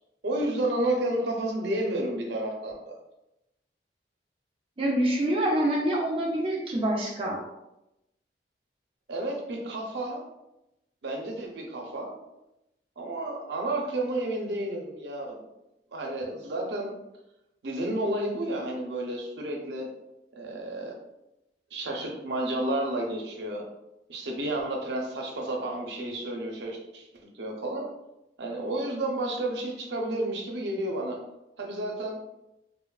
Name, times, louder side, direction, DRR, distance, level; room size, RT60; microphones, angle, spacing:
voice 1, 0.2-2.9 9.1-10.2 11.0-12.1 13.0-15.4 15.9-16.9 17.6-19.9 20.3-20.9 21.7-23.6 24.1-27.0 27.3-27.9 28.4-31.2 31.6-32.2, right 1 dB, 80° right, 0 dB, 0.6 m, -31 dB
voice 2, 4.8-7.4, right 1 dB, 30° right, -3 dB, 0.4 m, -26 dB
3.1 x 2.2 x 2.3 m, 0.90 s
head